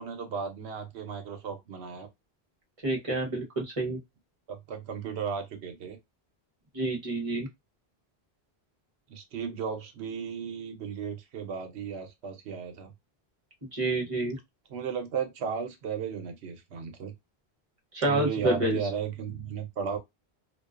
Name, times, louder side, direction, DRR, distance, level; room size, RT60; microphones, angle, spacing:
voice 1, 0.0-2.1 4.5-6.0 9.1-12.9 14.7-17.1 18.0-20.0, right 6 dB, 85° right, 1.0 m, -35 dB
voice 2, 2.8-4.0 6.7-7.5 13.7-14.4 17.9-18.8, right 1 dB, 35° right, 0.9 m, -28 dB
2.4 x 2.2 x 2.3 m
omnidirectional pair, 1.1 m